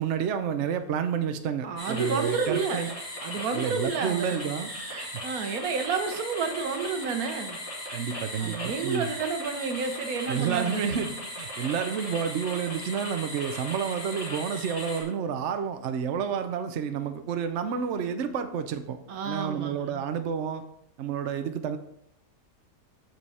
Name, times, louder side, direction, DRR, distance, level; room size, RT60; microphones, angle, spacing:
voice 1, 0.0-2.9 3.5-4.7 7.9-9.1 10.3-19.0 19.2-20.6 21.0-21.8, right 7 dB, 60° right, 8 dB, 0.9 m, -30 dB
voice 2, 1.6-4.4 4.9-7.6 8.4-10.8 19.1-20.0, right 5 dB, 80° right, 7 dB, 1.4 m, -30 dB
sound 1, 1.8-15.0, left 1 dB, 65° left, 4.1 m, -38 dB
7.7 x 6.8 x 4.2 m, 0.75 s
omnidirectional pair, 1.5 m